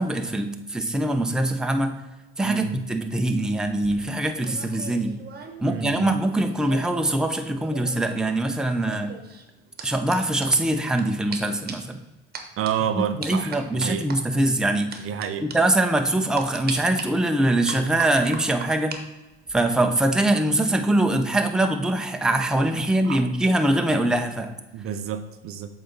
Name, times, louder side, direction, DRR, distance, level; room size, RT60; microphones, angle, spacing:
voice 1, 0.0-2.0 2.4-5.2 5.6-9.2 9.8-12.0 13.0-15.1 15.4-19.0 19.5-24.5, right 1 dB, ahead, 5 dB, 0.6 m, -23 dB
voice 2, 2.4-2.8 5.6-6.2 12.6-14.1 15.0-15.4 23.0-23.2 24.7-25.7, right 9 dB, 50° right, 9 dB, 0.6 m, -29 dB
sound 1, 3.6-7.1 7.3-11.0 11.3-11.4 11.7-11.9 12.3-12.7 13.2-14.2 14.9-15.3 15.5-15.6 16.4-17.0 17.7-19.0 19.3-19.7, right 5 dB, 35° right, 1.2 m, -39 dB
7.7 x 4.0 x 3.9 m, 1.1 s
hypercardioid pair, 75°, 29 cm